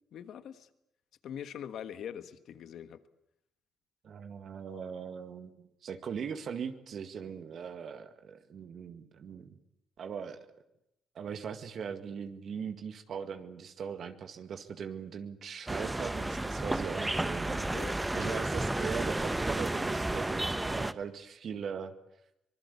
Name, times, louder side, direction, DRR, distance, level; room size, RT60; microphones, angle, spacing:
voice 1, 0.1-0.7 1.2-3.0 17.7-18.4, left 9 dB, 70° left, 12 dB, 1.5 m, -43 dB
voice 2, 4.0-9.6 10.0-10.4 11.1-21.9, right 7 dB, 60° right, 7 dB, 2.0 m, -40 dB
sound 1, 15.7-20.9, right 2 dB, 15° right, 1.0 m, -32 dB
25.0 x 20.5 x 8.4 m, 0.81 s
cardioid pair, 90°, 0 cm